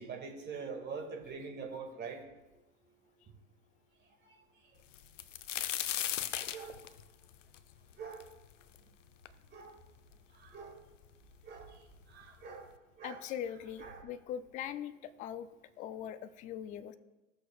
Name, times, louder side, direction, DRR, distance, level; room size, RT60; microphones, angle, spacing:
voice 1, 0.0-2.2 6.5-6.8 8.0-8.2 9.5-9.7 10.4-10.7 11.4-11.7 12.1-12.7 13.0-13.2 13.8-14.0, right 5 dB, 25° right, 2 dB, 2.0 m, -43 dB
sound 1, 4.9-8.8 9.3-9.4 10.1-10.2 10.5-11.1 12.0-12.1 12.5-12.7, left 11 dB, 75° left, 0.7 m, -37 dB
voice 2, 13.0-15.5 15.8-16.9, left 9 dB, 20° left, 13 dB, 0.4 m, -41 dB
16.5 x 6.4 x 2.3 m, 1.1 s
hypercardioid pair, 100°, 38 cm